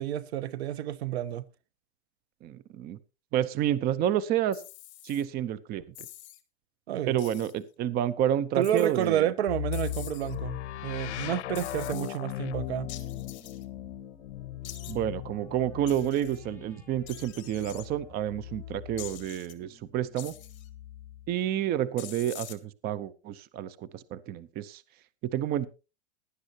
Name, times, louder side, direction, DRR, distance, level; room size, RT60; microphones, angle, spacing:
voice 1, 0.0-1.4 6.9-7.2 8.6-12.9, right 11 dB, 70° right, 1.0 m, -30 dB
voice 2, 2.4-3.0 3.3-4.6 5.0-5.8 7.1-9.2 14.9-20.3 21.3-24.8 25.2-25.7, right 11 dB, 30° right, 0.7 m, -29 dB
sound 1, 4.5-5.2 6.0-6.4 7.2-7.6 8.6-9.1 9.7-10.4 11.6-12.2 12.9-13.6 14.6-15.0 15.9-16.4 17.1-17.9 19.0-19.5 20.2-20.7 22.0-22.6, left 14 dB, 35° left, 1.7 m, -46 dB
sound 2, 9.5-19.3 20.3-21.3, left 13 dB, 85° left, 0.6 m, -38 dB
sound 3, 12.7-21.5, left 3 dB, 5° left, 2.3 m, -57 dB
18.0 x 11.0 x 2.8 m
hypercardioid pair, 130°, 33 cm